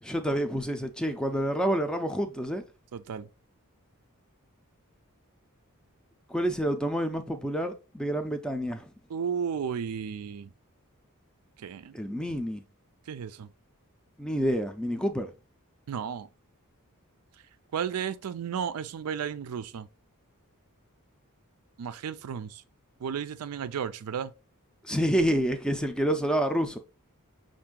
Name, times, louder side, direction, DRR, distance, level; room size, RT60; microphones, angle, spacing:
voice 1, 0.0-2.6 6.3-8.9 11.9-12.6 14.2-15.3 24.8-26.8, equal, 5° left, 0.4 m, -28 dB
voice 2, 2.9-3.3 9.1-10.5 11.6-12.0 13.1-13.5 15.9-16.3 17.7-19.9 21.8-22.6 23.0-24.3, right 7 dB, 80° right, 0.4 m, -33 dB
5.6 x 2.6 x 3.6 m
head